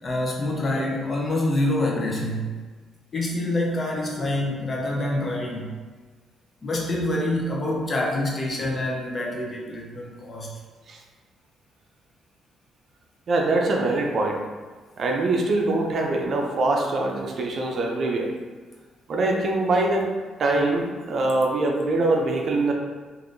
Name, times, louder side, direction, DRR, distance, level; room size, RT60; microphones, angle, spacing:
voice 1, 0.0-2.6 3.1-5.7 6.6-10.5, left 1 dB, 40° left, -2 dB, 0.8 m, -26 dB
voice 2, 13.3-14.4 15.0-18.3 19.1-20.1 20.4-22.7, right 2 dB, 55° right, 1 dB, 0.5 m, -23 dB
3.4 x 2.5 x 2.6 m, 1.4 s
cardioid pair, 90°, 0 cm